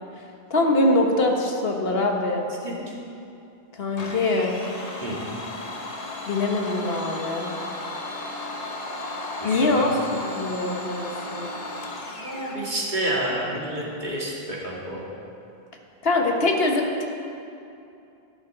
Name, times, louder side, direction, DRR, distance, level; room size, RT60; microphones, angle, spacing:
voice 1, 0.5-2.5 3.7-4.6 6.3-7.5 9.4-11.5 16.0-17.0, left 2 dB, 70° left, 2 dB, 1.5 m, -23 dB
Domestic sounds home sounds, 4.0-12.6, left 2 dB, 40° left, 1.1 m, -34 dB
voice 2, 9.4-9.8 12.2-15.0, right 1 dB, 45° right, -5 dB, 2.4 m, -29 dB
13.0 x 11.5 x 3.9 m, 2.7 s
omnidirectional pair, 1.1 m